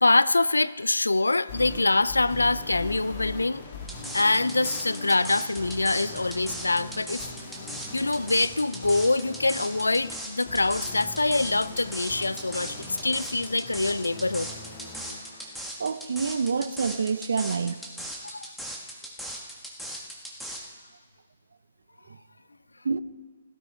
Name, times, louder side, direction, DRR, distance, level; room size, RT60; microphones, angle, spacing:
voice 1, 0.0-3.6 4.1-7.2 7.9-14.5 15.1-15.2 18.2-18.5, left 2 dB, 80° left, 18 dB, 0.4 m, -24 dB
sound 1, 1.5-15.5, left 3 dB, 45° left, 2.5 m, -41 dB
sound 2, 3.9-20.6, right 1 dB, ahead, 1.6 m, -38 dB
voice 2, 15.8-17.8 22.8-23.0, right 5 dB, 65° right, 15 dB, 0.6 m, -27 dB
16.5 x 13.5 x 3.9 m, 1.5 s
figure-of-eight pair, 130°, 0 cm